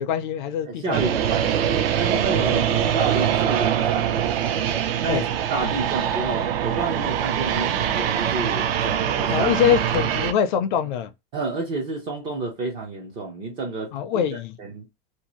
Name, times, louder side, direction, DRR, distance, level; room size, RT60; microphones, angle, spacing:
voice 1, 0.0-1.0 2.3-2.8 5.1-5.2 5.6-5.7 9.3-11.1 13.9-14.6, left 8 dB, 55° left, 0.5 m, -24 dB
voice 2, 0.6-4.3 5.0-9.5 11.3-13.9 14.6-14.8, right 3 dB, 15° right, 0.3 m, -30 dB
sound 1, 0.9-10.3, right 9 dB, 70° right, 0.5 m, -23 dB
2.6 x 2.3 x 2.9 m
supercardioid pair, 165°, 31 cm